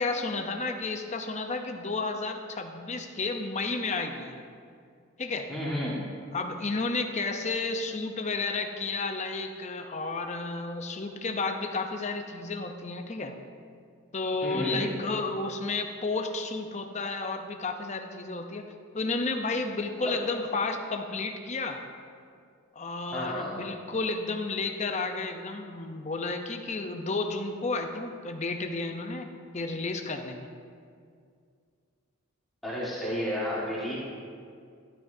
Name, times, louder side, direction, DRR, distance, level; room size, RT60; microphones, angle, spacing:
voice 1, 0.0-4.4 5.2-5.5 6.3-13.4 14.1-21.8 22.8-30.5, left 3 dB, 30° left, 5 dB, 0.7 m, -32 dB
voice 2, 5.5-6.0 14.4-14.9 20.0-20.2 23.1-23.5 32.6-34.0, equal, ahead, -8 dB, 1.7 m, -31 dB
13.0 x 12.0 x 2.7 m, 2.2 s
head